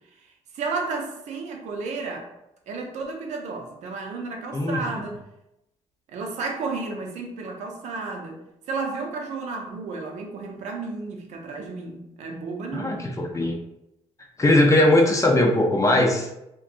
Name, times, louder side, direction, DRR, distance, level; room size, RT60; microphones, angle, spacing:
voice 1, 0.5-2.3 2.7-5.2 6.1-8.4 8.7-13.1, right 4 dB, 75° right, 2 dB, 0.5 m, -32 dB
voice 2, 12.7-13.6 14.4-16.3, left 1 dB, 25° left, 1 dB, 0.5 m, -19 dB
2.6 x 2.2 x 2.5 m, 0.86 s
cardioid pair, 75°, 12 cm